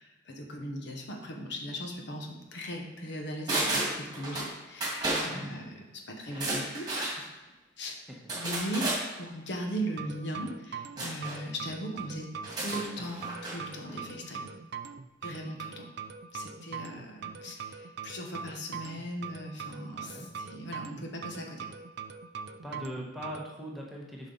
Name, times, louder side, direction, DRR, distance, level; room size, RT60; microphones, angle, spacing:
voice 1, 0.0-7.3 7.8-8.0 8.3-8.9 9.2-12.3 12.6-14.4 15.2-15.9 16.3-21.7, equal, 60° left, 1 dB, 1.0 m, -38 dB
sound 1, 3.5-4.5 4.8-5.3 6.3-7.2 8.3-9.0 11.0-11.4 12.4-13.6 13.9-14.0, right 2 dB, 20° right, 1.9 m, -32 dB
voice 2, 5.3-5.6 8.1-8.2 19.9-20.3 22.6-24.3, equal, ahead, -3 dB, 1.0 m, -41 dB
sound 2, 10.0-23.5, right 6 dB, 55° right, 0.4 m, -42 dB
7.3 x 5.4 x 3.9 m, 1.2 s
head